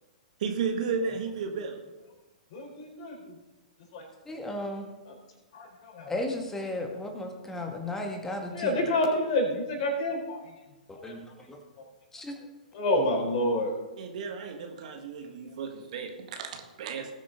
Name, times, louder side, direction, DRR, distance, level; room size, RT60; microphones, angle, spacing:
voice 1, 0.4-1.8 7.4-7.5 14.0-17.1, right 5 dB, 55° right, 4 dB, 1.7 m, -33 dB
voice 2, 2.5-3.1 3.9-4.0 5.1-5.2 5.5-6.1 8.5-10.4 11.1-11.2 12.7-13.7, left 1 dB, 45° left, 1 dB, 4.0 m, -28 dB
voice 3, 4.3-4.8 6.1-8.7 11.0-11.2 11.5-11.6 12.1-12.3, left 1 dB, 10° left, 3 dB, 1.9 m, -34 dB
19.0 x 7.5 x 3.9 m, 1.1 s
figure-of-eight pair, 110°, 5 cm